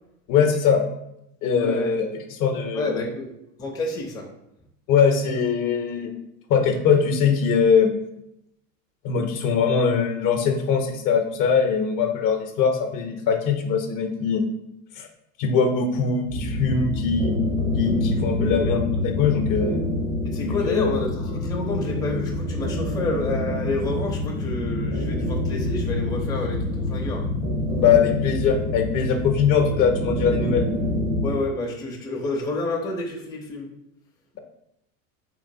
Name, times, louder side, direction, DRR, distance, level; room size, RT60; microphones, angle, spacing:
voice 1, 0.3-0.9 1.4-3.0 4.9-6.1 6.5-7.9 9.0-14.4 15.0-15.1 15.4-17.4 17.7-19.8 20.4-21.0 27.7-30.6, left 6 dB, 50° left, 5 dB, 0.7 m, -21 dB
voice 2, 1.6-1.9 2.7-3.3 3.6-4.3 18.4-18.7 20.2-27.3 31.2-33.7, left 2 dB, 10° left, -1 dB, 0.5 m, -29 dB
sound 1, 16.3-31.3, left 1 dB, 75° right, 1.0 m, -26 dB
3.5 x 3.1 x 2.6 m, 0.81 s
hypercardioid pair, 90°, 42 cm